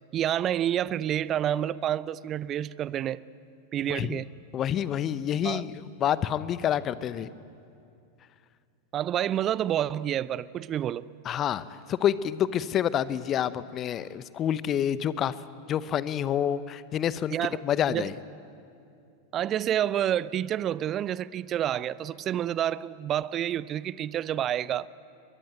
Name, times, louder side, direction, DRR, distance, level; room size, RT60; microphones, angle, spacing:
voice 1, 0.1-3.2 3.7-4.3 5.4-5.7 8.9-11.0 17.3-17.6 17.9-18.1 19.3-24.9, right 11 dB, 30° right, 0.5 m, -28 dB
voice 2, 3.9-4.2 4.5-7.3 11.2-15.3 15.7-17.4 17.6-18.1, left 10 dB, 30° left, 0.8 m, -28 dB
22.5 x 22.0 x 9.3 m
figure-of-eight pair, 90°, 0 cm